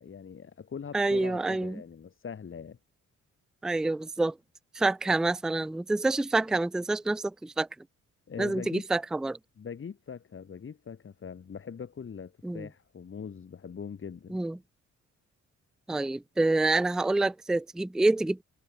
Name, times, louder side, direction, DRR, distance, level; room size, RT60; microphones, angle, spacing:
voice 1, 0.0-2.8 8.3-8.9 9.6-14.4, left 6 dB, 45° left, 3.9 m, -42 dB
voice 2, 0.9-1.8 3.6-4.3 4.7-7.7 8.4-9.4 12.4-12.7 14.3-14.6 15.9-18.4, right 2 dB, ahead, 0.4 m, -27 dB
cardioid pair, 90°, 30 cm